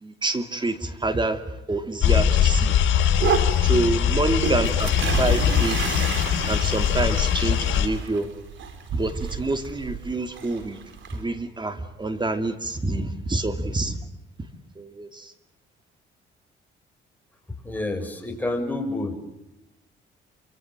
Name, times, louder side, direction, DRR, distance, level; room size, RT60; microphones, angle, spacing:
voice 1, 0.0-1.4 1.7-2.8 3.6-4.9 5.2-6.0 6.5-8.3 8.9-10.8 11.1-14.0 14.8-15.3, right 2 dB, 25° right, 8 dB, 2.7 m, -27 dB
sound 1, 2.0-7.9, left 9 dB, 80° left, 3.8 m, -21 dB
sound 2, 3.0-11.2, right 6 dB, 70° right, 4.6 m, -31 dB
voice 2, 17.6-19.2, left 2 dB, 10° left, 3 dB, 6.8 m, -28 dB
27.0 x 25.0 x 7.5 m, 0.91 s
cardioid pair, 90°, 20 cm